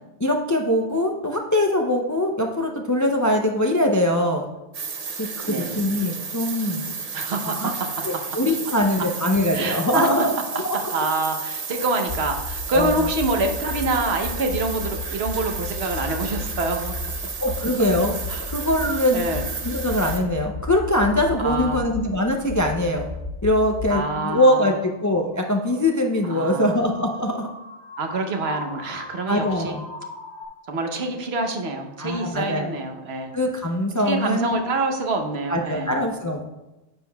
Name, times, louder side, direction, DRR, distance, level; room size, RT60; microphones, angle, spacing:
voice 1, 0.2-4.5 5.2-6.9 7.5-7.7 8.0-10.8 12.7-13.1 17.4-18.2 18.5-19.3 19.6-23.1 23.4-27.5 29.3-29.8 32.0-32.8 33.3-34.6 35.5-36.5, left 1 dB, 30° left, 2 dB, 0.3 m, -22 dB
sound 1, 4.7-20.2, right 5 dB, 40° right, 0.6 m, -33 dB
voice 2, 5.4-5.8 7.1-7.9 9.5-10.1 10.7-16.9 18.3-18.5 19.1-19.5 21.4-21.8 23.9-24.7 26.3-26.8 28.0-29.8 30.7-33.3 34.0-35.9, right 2 dB, 65° right, 4 dB, 1.1 m, -26 dB
sound 2, 12.1-23.9 24.4-30.4, left 3 dB, 50° left, 2.5 m, -35 dB
9.7 x 7.3 x 2.3 m, 1.0 s
omnidirectional pair, 1.2 m